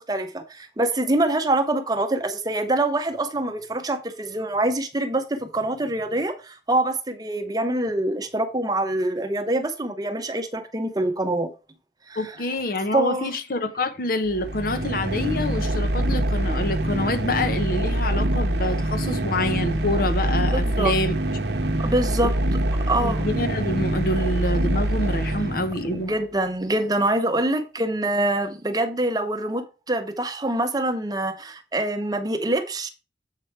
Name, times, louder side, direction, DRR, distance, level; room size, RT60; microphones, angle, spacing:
voice 1, 0.0-11.5 12.1-12.4 12.9-13.3 20.5-20.9 21.8-22.3 22.9-23.3 25.9-32.9, right 1 dB, 20° right, 0.7 m, -25 dB
voice 2, 12.2-21.1 22.2-22.3 23.0-26.1, left 2 dB, 50° left, 0.8 m, -26 dB
sound 1, 14.3-26.1, right 1 dB, 65° right, 0.8 m, -25 dB
7.5 x 4.8 x 4.5 m
head